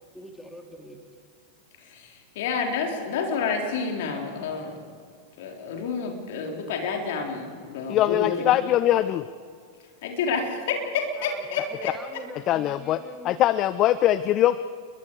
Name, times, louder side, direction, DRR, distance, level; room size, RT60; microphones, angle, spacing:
voice 1, 0.1-1.0 11.1-13.5, equal, 5° left, 3 dB, 2.7 m, -43 dB
voice 2, 1.8-4.8 5.4-8.6 10.0-11.9, left 5 dB, 55° left, 2 dB, 3.9 m, -29 dB
voice 3, 7.9-9.3 12.5-14.6, left 13 dB, 35° left, 16 dB, 0.6 m, -22 dB
29.0 x 23.0 x 4.8 m, 2.1 s
figure-of-eight pair, 90°, 0 cm